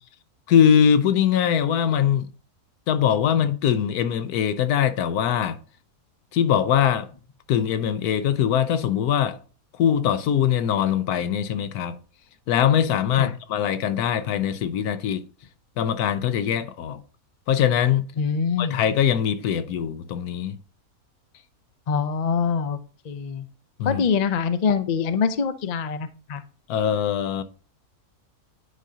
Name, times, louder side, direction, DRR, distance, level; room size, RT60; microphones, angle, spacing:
voice 1, 0.5-2.3 2.9-5.6 6.3-7.1 7.5-9.4 9.8-12.0 12.5-15.2 15.8-17.0 17.5-18.1 18.6-20.6 23.8-24.0 26.7-27.4, left 9 dB, 85° left, 1.2 m, -22 dB
voice 2, 18.2-18.8 21.9-22.8 23.0-23.5 23.8-26.4, left 6 dB, 55° left, 0.4 m, -24 dB
9.9 x 5.1 x 2.8 m
omnidirectional pair, 1.6 m